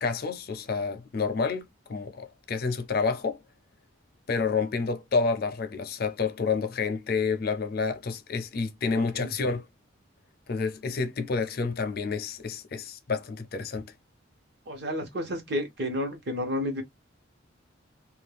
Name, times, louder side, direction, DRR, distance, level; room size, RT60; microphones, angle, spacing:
voice 1, 0.0-3.4 4.3-9.7 10.5-13.9, left 4 dB, 45° left, 0.5 m, -29 dB
voice 2, 8.9-9.3 14.7-16.8, left 1 dB, 55° right, 1.0 m, -31 dB
2.5 x 2.3 x 3.3 m
head